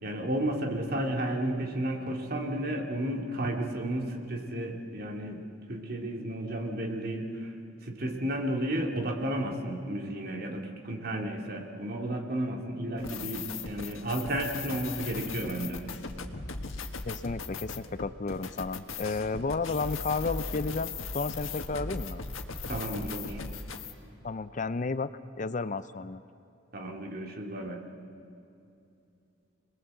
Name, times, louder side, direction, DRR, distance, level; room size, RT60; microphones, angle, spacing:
voice 1, 0.0-5.4 5.7-7.5 7.8-15.8 22.7-23.4 26.7-27.8, right 1 dB, 50° right, 2 dB, 2.5 m, -32 dB
sound 1, 13.0-23.9, left 4 dB, 85° left, 1.6 m, -38 dB
voice 2, 17.0-22.2 24.2-25.1 25.4-26.2, left 4 dB, 40° left, 14 dB, 0.5 m, -32 dB
26.5 x 20.5 x 7.8 m, 2.7 s
head